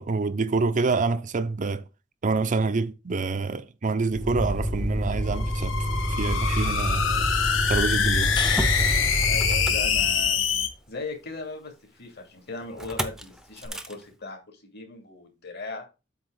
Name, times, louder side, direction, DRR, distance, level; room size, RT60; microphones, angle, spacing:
voice 1, 0.0-1.8 2.2-5.8 6.1-7.1 7.7-8.3, right 4 dB, 40° right, 0.5 m, -26 dB
Motor vehicle (road), 4.1-10.5 12.8-13.2 13.6-13.9, equal, 5° right, 0.7 m, -28 dB
sound 1, 5.3-10.7, left 7 dB, 85° left, 1.3 m, -25 dB
voice 2, 7.0-7.3 9.2-10.4 10.9-15.9, left 3 dB, 60° left, 2.7 m, -38 dB
sound 2, 8.0-10.3 13.6-13.7, left 4 dB, 25° left, 1.1 m, -34 dB
8.0 x 3.5 x 6.6 m
head